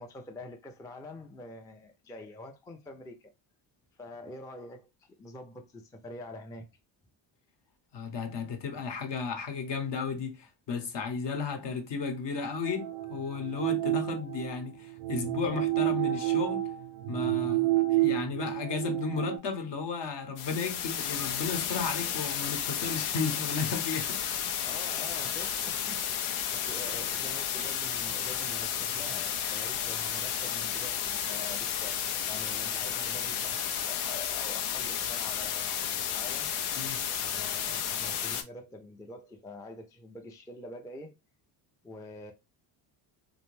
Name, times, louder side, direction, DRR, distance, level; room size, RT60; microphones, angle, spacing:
voice 1, 0.0-3.3 4.0-6.7 24.6-36.5 37.2-41.1 41.8-42.3, left 2 dB, 10° left, 0.3 m, -46 dB
voice 2, 7.9-16.7 17.1-24.2 36.8-37.0, left 5 dB, 60° left, 0.9 m, -34 dB
sound 1, 12.6-19.4, right 17 dB, 90° right, 0.6 m, -30 dB
sound 2, 20.4-38.4, left 8 dB, 85° left, 0.6 m, -32 dB
2.6 x 2.1 x 3.1 m
cardioid pair, 80°, 49 cm